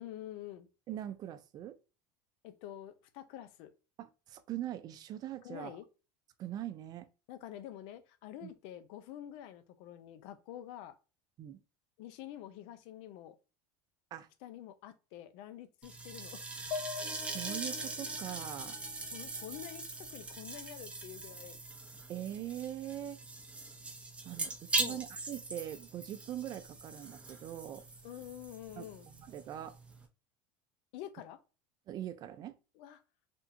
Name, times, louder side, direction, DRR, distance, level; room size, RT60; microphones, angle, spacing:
voice 1, 0.0-0.7 2.4-3.7 5.4-5.8 7.3-10.9 12.0-13.4 14.4-16.6 19.1-21.6 24.8-25.0 28.0-29.1 30.9-31.4 32.7-33.0, left 12 dB, 65° left, 0.6 m, -47 dB
voice 2, 0.9-1.8 4.0-5.8 6.4-7.1 8.4-8.5 11.4-11.6 14.1-14.3 17.1-18.7 22.1-23.2 24.2-27.8 28.8-29.8 31.9-32.5, right 12 dB, 40° right, 0.5 m, -42 dB
sound 1, 15.8-30.1, right 3 dB, 10° right, 0.8 m, -41 dB
sound 2, 16.7-20.4, left 6 dB, 35° left, 1.3 m, -45 dB
3.5 x 2.4 x 2.7 m
supercardioid pair, 120°, 10 cm